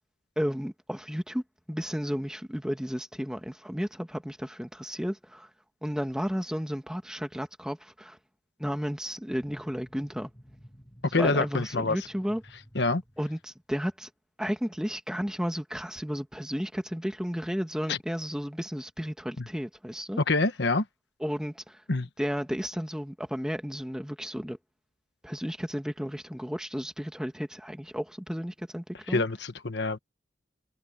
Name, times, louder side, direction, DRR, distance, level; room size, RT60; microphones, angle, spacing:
voice 1, 0.3-1.4 1.7-5.5 5.8-8.2 8.6-10.3 11.2-12.4 13.2-14.1 14.4-20.2 21.2-21.8 22.2-24.6 25.2-29.2, equal, 5° right, 1.7 m, -33 dB
sound 1, 9.3-13.6, equal, 20° left, 7.1 m, -53 dB
voice 2, 11.1-12.0 12.7-13.0 17.9-18.0 19.4-19.5 20.3-20.8 21.9-22.1 29.1-30.0, left 3 dB, 65° left, 1.3 m, -26 dB
head